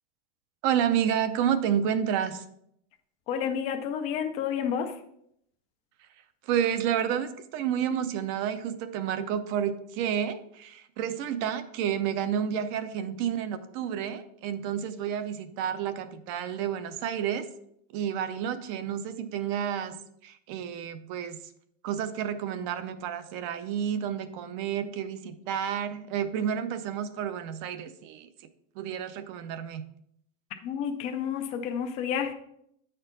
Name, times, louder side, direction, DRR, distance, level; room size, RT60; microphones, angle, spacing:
voice 1, 0.6-2.4 6.4-17.5 17.9-20.0 20.2-21.4 21.8-28.3 28.8-29.8, right 9 dB, 40° right, 11 dB, 0.5 m, -30 dB
voice 2, 3.3-4.9 30.6-32.3, left 8 dB, 20° left, 6 dB, 0.3 m, -30 dB
8.7 x 4.4 x 3.9 m, 0.72 s
supercardioid pair, 165°, 37 cm